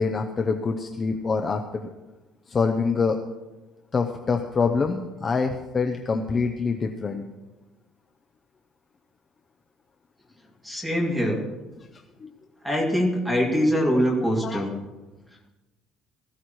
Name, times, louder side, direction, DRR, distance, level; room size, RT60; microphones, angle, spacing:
voice 1, 0.0-1.9 2.5-3.2 3.9-7.2 12.2-12.3 14.4-14.6, left 4 dB, 20° left, 4 dB, 0.6 m, -25 dB
voice 2, 10.6-11.4 12.6-14.7, equal, 5° right, -1 dB, 2.3 m, -23 dB
17.0 x 14.5 x 3.1 m, 1.1 s
cardioid pair, 180°, 0 cm